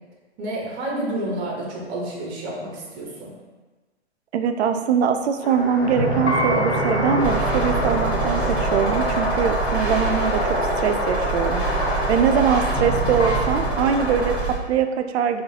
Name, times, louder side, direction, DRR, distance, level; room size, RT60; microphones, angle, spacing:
voice 1, 0.4-3.3 12.8-13.1, right 1 dB, 30° right, -2 dB, 1.0 m, -30 dB
voice 2, 4.3-11.7 12.1-15.4, right 7 dB, 70° right, 8 dB, 0.5 m, -22 dB
sound 1, 5.4-14.4, left 1 dB, 10° left, 0.4 m, -26 dB
sound 2, 5.8-13.5, right 1 dB, 85° left, 1.3 m, -29 dB
sound 3, 7.2-14.5, right 4 dB, 5° right, 1.1 m, -27 dB
4.6 x 2.5 x 2.8 m, 1.3 s
hypercardioid pair, 125°, 34 cm